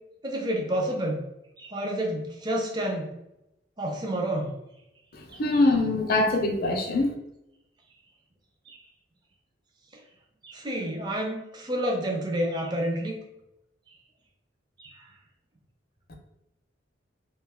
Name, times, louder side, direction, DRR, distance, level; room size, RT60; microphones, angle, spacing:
voice 1, 0.2-1.2 1.6-3.1 3.8-4.5 5.3-5.6 8.7-8.8 9.9-10.0 10.4-13.2 14.8-15.1, right 1 dB, 20° right, 0 dB, 0.4 m, -29 dB
voice 2, 5.1-7.1 16.1-16.2, left 2 dB, 50° left, 3 dB, 0.4 m, -24 dB
2.5 x 2.2 x 3.4 m, 0.87 s
head